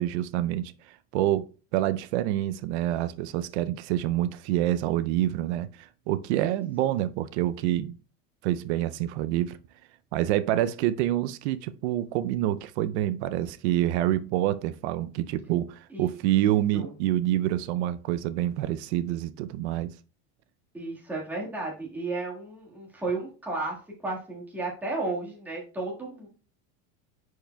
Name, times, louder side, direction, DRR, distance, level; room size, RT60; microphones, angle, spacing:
voice 1, 0.0-8.0 8.4-9.6 10.1-19.9, right 13 dB, 85° right, 0.5 m, -27 dB
voice 2, 20.7-26.3, right 3 dB, 5° right, 1.6 m, -33 dB
10.0 x 4.7 x 2.2 m
cardioid pair, 175°, 33 cm